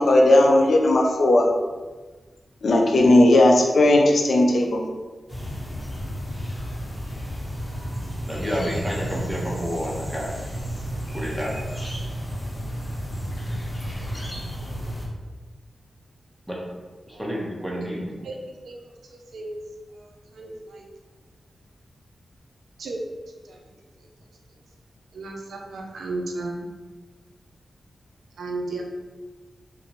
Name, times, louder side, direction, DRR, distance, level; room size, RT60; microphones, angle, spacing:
voice 1, 0.0-1.5 2.6-4.8, left 1 dB, 70° left, 1 dB, 0.3 m, -16 dB
sound 1, 5.3-15.1, equal, 30° left, 0.8 m, -32 dB
voice 2, 8.2-10.6 11.1-11.6 16.5-16.6 17.1-18.3, equal, 5° right, -4 dB, 0.8 m, -30 dB
voice 3, 17.1-17.4 18.2-18.8 19.1-19.6 19.9-20.8 22.8-23.0 23.4-23.6 24.0-24.1 25.1-26.7 28.4-28.8, right 2 dB, 90° right, 1 dB, 0.3 m, -34 dB
2.5 x 2.1 x 2.8 m, 1.3 s
cardioid pair, 50°, 0 cm